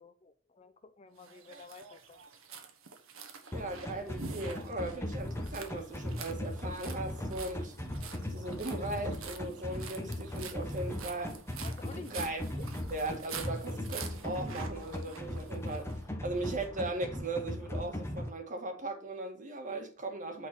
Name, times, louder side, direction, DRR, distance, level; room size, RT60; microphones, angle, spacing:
voice 1, 0.0-2.2 11.6-12.2 12.6-12.7, left 3 dB, 30° left, 0.5 m, -51 dB
sound 1, 1.2-16.0, right 6 dB, 75° right, 1.2 m, -47 dB
sound 2, 3.5-18.3, left 1 dB, 10° left, 1.1 m, -39 dB
voice 2, 3.5-7.8 8.3-11.4 12.0-12.4 12.9-20.5, right 2 dB, 40° right, 1.6 m, -38 dB
8.6 x 4.2 x 4.3 m
head